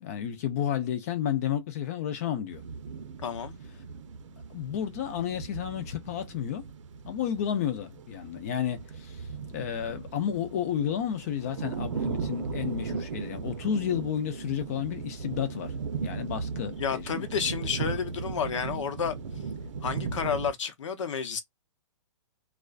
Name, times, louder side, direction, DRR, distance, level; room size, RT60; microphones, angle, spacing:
voice 1, 0.0-2.6 4.5-6.7 7.0-15.7 16.0-17.3, left 9 dB, 30° left, 0.4 m, -31 dB
sound 1, 2.5-20.5, right 5 dB, 90° right, 0.7 m, -37 dB
voice 2, 3.2-3.6 16.8-19.1 19.8-21.4, left 7 dB, 85° left, 0.7 m, -31 dB
2.4 x 2.1 x 2.3 m
hypercardioid pair, 165°, 15 cm